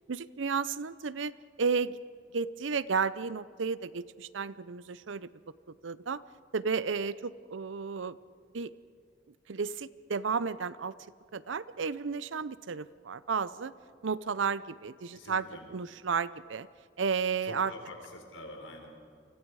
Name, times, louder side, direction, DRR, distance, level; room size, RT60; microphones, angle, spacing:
voice 1, 0.1-1.3 1.6-2.0 2.3-5.3 5.8-6.2 6.5-8.2 8.5-8.7 9.5-10.9 11.3-13.7 14.0-16.7 17.0-17.7, right 5 dB, 85° right, 17 dB, 0.6 m, -32 dB
voice 2, 15.1-15.7 17.4-18.9, left 1 dB, 90° left, 2 dB, 4.3 m, -46 dB
29.0 x 24.5 x 4.8 m, 2.1 s
head